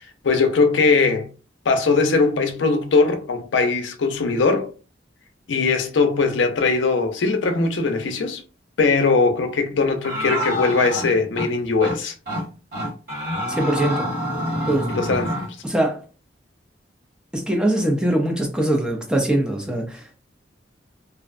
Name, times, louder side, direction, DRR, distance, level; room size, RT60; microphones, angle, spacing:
voice 1, 0.2-1.3 1.7-4.7 5.5-8.4 8.8-12.1 14.9-15.3, left 4 dB, 75° left, 0.5 m, -20 dB
sound 1, 10.0-11.5 11.8-12.0 12.3-12.4 12.7-15.5, equal, 55° right, 1.4 m, -27 dB
voice 2, 13.5-14.1 14.7-14.9 15.6-16.0 17.3-20.2, right 1 dB, 5° right, 0.4 m, -22 dB
2.4 x 2.1 x 2.4 m
head